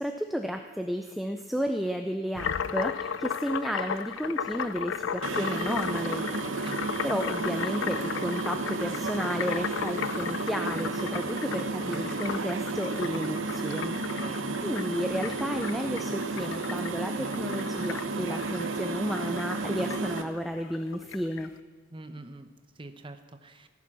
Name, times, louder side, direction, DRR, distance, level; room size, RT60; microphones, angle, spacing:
voice 1, 0.0-6.2 7.0-14.0 14.6-21.5, equal, ahead, 5 dB, 0.4 m, -32 dB
sound 1, 2.4-21.5, left 7 dB, 70° left, 0.4 m, -36 dB
sound 2, 5.2-20.2, right 3 dB, 80° right, 0.9 m, -32 dB
voice 2, 14.1-14.5 21.9-23.7, right 2 dB, 25° right, 8 dB, 0.8 m, -45 dB
16.0 x 7.3 x 6.0 m, 1.4 s
head